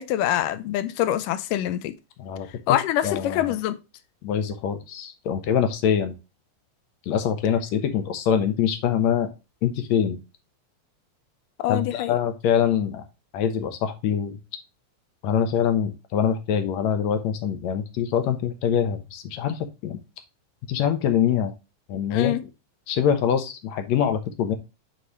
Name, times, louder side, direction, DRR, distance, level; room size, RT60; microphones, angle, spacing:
voice 1, 0.0-2.0 2.5-3.8 11.6-12.2 22.1-22.4, left 12 dB, 90° left, 2.2 m, -25 dB
voice 2, 2.2-2.8 3.0-3.5 4.2-6.2 7.1-9.3 9.6-10.2 11.7-13.0 13.3-14.4 15.2-20.0 20.7-21.5 21.9-22.3 22.9-24.5, left 8 dB, 65° left, 2.0 m, -24 dB
8.4 x 4.2 x 3.0 m
omnidirectional pair, 3.8 m